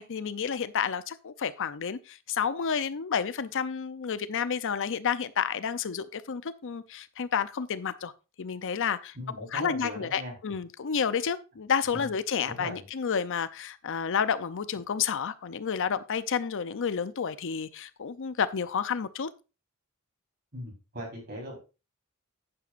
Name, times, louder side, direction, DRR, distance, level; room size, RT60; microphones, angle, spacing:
voice 1, 0.0-8.1 8.4-19.3, left 7 dB, 60° left, 0.6 m, -30 dB
voice 2, 9.1-10.3 11.9-12.1 12.5-12.9 20.5-21.6, equal, 50° right, 4.3 m, -39 dB
10.0 x 9.7 x 2.5 m
head